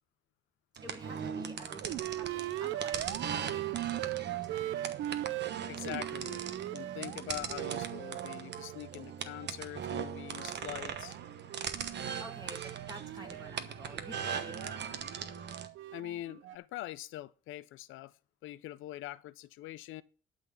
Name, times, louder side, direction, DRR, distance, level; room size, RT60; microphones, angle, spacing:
voice 1, 0.8-4.8 12.2-14.8, right 2 dB, 20° right, 3.0 m, -50 dB
sound 1, 0.8-15.7, right 7 dB, 60° right, 1.1 m, -40 dB
sound 2, 1.8-9.5 9.9-16.6, right 14 dB, 80° right, 0.5 m, -40 dB
voice 2, 5.7-6.4 6.7-11.2 15.9-18.1 18.4-20.0, left 15 dB, 85° left, 0.5 m, -43 dB
12.0 x 4.0 x 7.1 m
cardioid pair, 90°, 20 cm